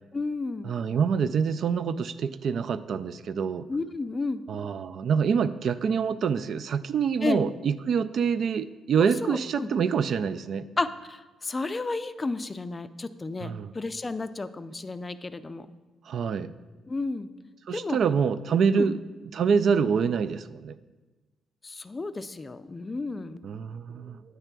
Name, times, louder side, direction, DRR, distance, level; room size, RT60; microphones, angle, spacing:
voice 1, 0.1-0.7 3.7-4.4 7.2-7.4 9.0-9.7 10.8-15.7 16.9-17.3 17.7-18.0 18.7-18.9 21.6-23.4, left 3 dB, 25° left, 12 dB, 0.4 m, -32 dB
voice 2, 0.6-3.6 4.5-10.6 13.4-13.7 16.1-16.5 17.7-19.0 19.3-20.8 23.4-24.2, right 6 dB, 60° right, 15 dB, 0.3 m, -26 dB
9.1 x 3.3 x 6.0 m, 1.2 s
cardioid pair, 90°, 0 cm